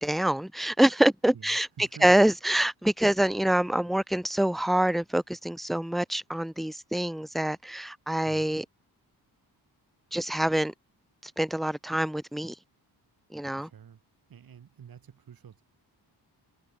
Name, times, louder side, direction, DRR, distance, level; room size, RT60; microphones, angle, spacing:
voice 1, 0.0-1.7 2.0-8.6 10.1-10.7 11.2-12.5 13.3-13.7, right 1 dB, ahead, 0.8 m, -25 dB
voice 2, 1.3-2.2 8.3-8.5 13.6-14.0 14.3-15.6, right 8 dB, 60° right, 6.9 m, -48 dB
wide cardioid pair, 135°, 39 cm